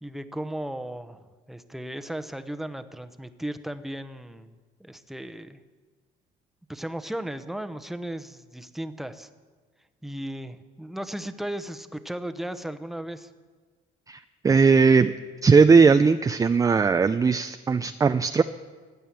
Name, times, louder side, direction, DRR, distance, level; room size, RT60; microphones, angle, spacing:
voice 1, 0.0-5.6 6.7-9.3 10.0-13.3, right 1 dB, ahead, 10 dB, 0.9 m, -36 dB
voice 2, 14.1-15.1 15.4-18.4, right 5 dB, 20° right, 9 dB, 0.4 m, -18 dB
15.0 x 9.3 x 8.6 m, 1.4 s
cardioid pair, 110°, 17 cm